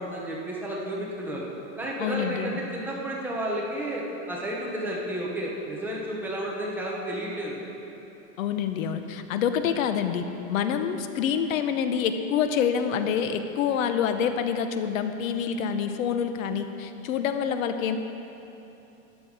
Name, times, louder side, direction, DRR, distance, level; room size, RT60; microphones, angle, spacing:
voice 1, 0.0-1.4 1.8-7.6, right 1 dB, 5° right, -4 dB, 0.9 m, -32 dB
voice 2, 2.0-2.6 8.4-18.0, left 7 dB, 75° left, 8 dB, 0.9 m, -27 dB
13.5 x 9.8 x 4.8 m, 3.0 s
supercardioid pair, 175°, 41 cm